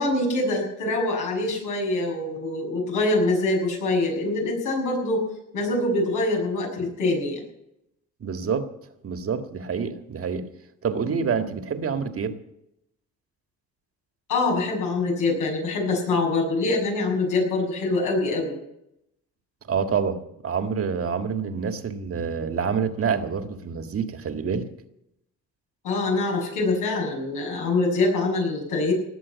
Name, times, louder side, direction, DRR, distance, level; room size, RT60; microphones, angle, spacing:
voice 1, 0.0-5.3 5.5-7.4 14.3-18.6 25.8-28.9, left 2 dB, 90° left, 6.7 m, -24 dB
voice 2, 8.2-8.7 9.0-10.5 10.8-12.4 19.7-20.2 20.4-24.7, right 6 dB, 50° right, 1.8 m, -27 dB
19.0 x 7.5 x 8.4 m
cardioid pair, 90°, 30 cm